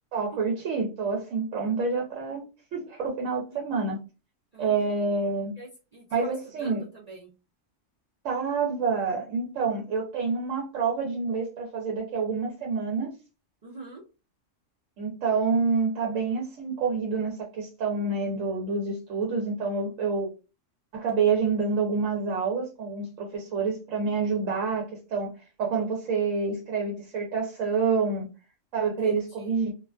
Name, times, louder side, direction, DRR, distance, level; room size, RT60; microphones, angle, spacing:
voice 1, 0.1-2.4 2.7-4.0 4.6-5.5 6.1-6.8 8.2-13.1 15.0-20.3 20.9-25.3 25.6-28.3 28.7-29.7, right 4 dB, 85° right, 0 dB, 1.0 m, -27 dB
voice 2, 5.5-7.3 13.6-14.0 28.8-29.5, right 2 dB, 55° right, -4 dB, 0.4 m, -45 dB
2.4 x 2.2 x 2.3 m, 0.31 s
omnidirectional pair, 1.3 m